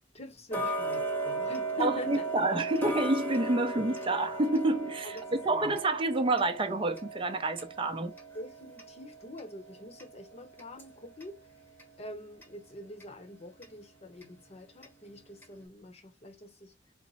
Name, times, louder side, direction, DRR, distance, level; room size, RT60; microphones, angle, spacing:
voice 1, 0.1-2.3 5.0-5.1 5.5-5.8 8.3-11.4 12.0-16.7, left 2 dB, 35° left, 0.8 m, -44 dB
Tick-tock, 0.5-11.4 11.8-11.9 12.4-12.5 13.0-13.1 13.6-13.7 14.2-14.3 14.8-14.9 15.4-15.5, right 2 dB, 10° left, 0.9 m, -37 dB
voice 2, 1.8-8.1, right 2 dB, 30° right, 0.6 m, -28 dB
4.2 x 2.1 x 4.0 m
head